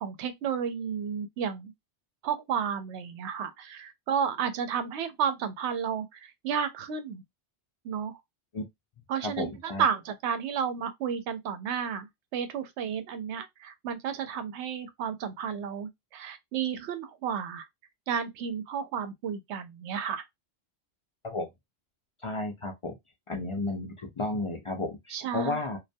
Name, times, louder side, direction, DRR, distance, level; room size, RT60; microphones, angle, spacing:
voice 1, 0.0-1.7 2.2-7.2 7.8-8.2 9.1-17.6 18.1-20.2 25.1-25.6, right 7 dB, 80° right, 0.8 m, -32 dB
voice 2, 9.2-9.8 21.2-21.5 22.2-23.0 23.3-25.8, left 2 dB, 55° left, 0.3 m, -33 dB
2.2 x 2.2 x 2.5 m
omnidirectional pair, 1.1 m